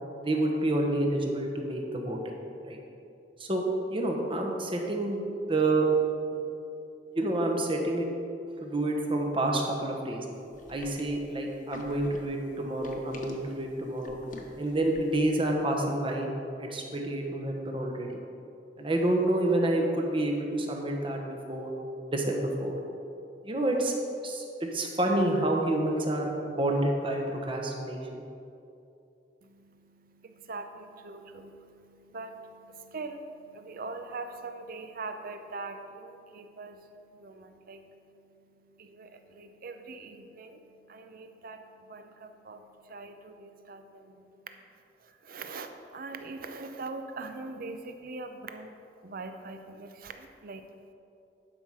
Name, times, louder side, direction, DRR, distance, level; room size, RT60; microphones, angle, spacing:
voice 1, 0.2-2.2 2.7-2.8 3.4-3.6 3.9-5.2 5.5-5.9 6.3-6.4 7.1-8.1 8.6-10.2 10.7-14.2 14.6-16.3 16.6-18.2 18.8-21.7 22.1-22.8 23.4-23.9 24.2-28.2, right 1 dB, 30° right, 1 dB, 1.0 m, -28 dB
sound 1, 10.5-15.3, left 1 dB, 45° left, 1.0 m, -47 dB
voice 2, 29.4-44.6 45.0-48.7 49.0-50.6, right 3 dB, 50° right, 7 dB, 0.6 m, -43 dB
11.5 x 5.7 x 4.8 m, 2.7 s
head